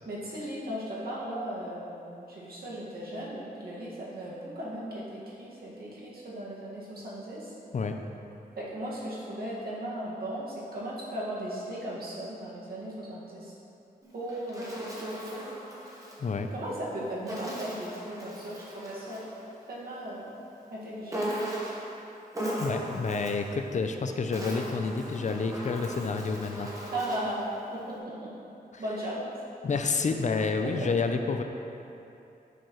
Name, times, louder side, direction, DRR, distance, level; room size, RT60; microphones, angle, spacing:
voice 1, 0.1-7.5 8.6-13.5 14.1-15.4 16.5-19.2 19.7-20.3 20.7-21.2 26.9-27.4 27.7-28.3 28.8-29.3 30.6-30.9, right 1 dB, 75° right, -7 dB, 1.8 m, -37 dB
Insect, 14.0-16.2 17.3-19.3 21.1-21.9 22.3-23.5 24.1-27.4, right 1 dB, 20° right, 1.2 m, -37 dB
voice 2, 22.6-26.7 28.7-28.8 29.6-31.4, left 4 dB, 50° left, 5 dB, 0.5 m, -29 dB
9.0 x 6.6 x 3.1 m, 2.8 s
wide cardioid pair, 135°, 16 cm